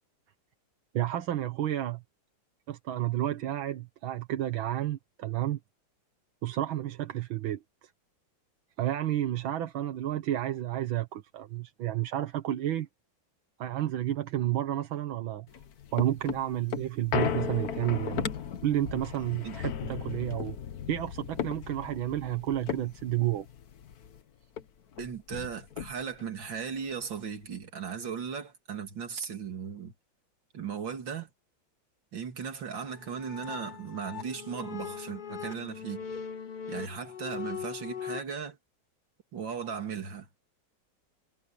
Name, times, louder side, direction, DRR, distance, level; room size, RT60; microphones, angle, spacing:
voice 1, 0.9-2.0 2.7-5.6 6.4-7.6 8.8-12.9 13.6-15.5 15.9-18.3 18.6-20.6 20.9-23.5, right 12 dB, 85° right, 2.0 m, -31 dB
sound 1, 15.5-24.2 24.6-24.7 24.9-26.3 26.8-26.9, left 8 dB, 55° left, 1.5 m, -36 dB
voice 2, 25.0-29.9 30.5-31.3 32.1-36.0 36.7-38.6 39.3-40.3, right 6 dB, 70° right, 3.1 m, -37 dB
sound 2, 32.9-38.2, left 7 dB, 85° left, 0.4 m, -40 dB
omnidirectional pair, 2.1 m